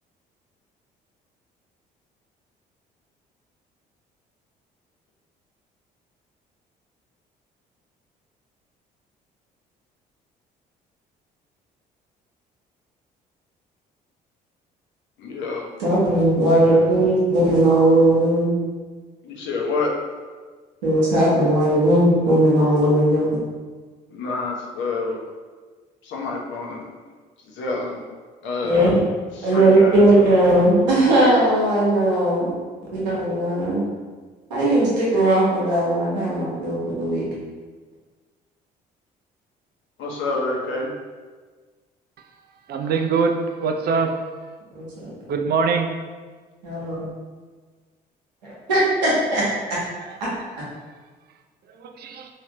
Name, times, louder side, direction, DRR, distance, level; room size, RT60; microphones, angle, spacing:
voice 1, 15.2-15.7 19.2-19.9 24.1-25.2 26.0-26.9 27.6-28.0 28.4-29.0 29.5-30.3 40.0-40.9, left 3 dB, 65° left, -1 dB, 0.8 m, -27 dB
voice 2, 15.8-18.5 20.8-23.3 28.6-28.9 29.4-32.5 32.9-33.8 34.5-37.3 44.7-45.1 46.6-47.1 48.4-49.4 50.2-50.3, right 1 dB, 90° right, -6 dB, 1.0 m, -18 dB
voice 3, 42.7-43.4 43.6-44.1 45.3-45.9 51.8-52.3, right 5 dB, 50° right, 5 dB, 0.5 m, -22 dB
3.3 x 2.7 x 2.9 m, 1.4 s
hypercardioid pair, 55°, 21 cm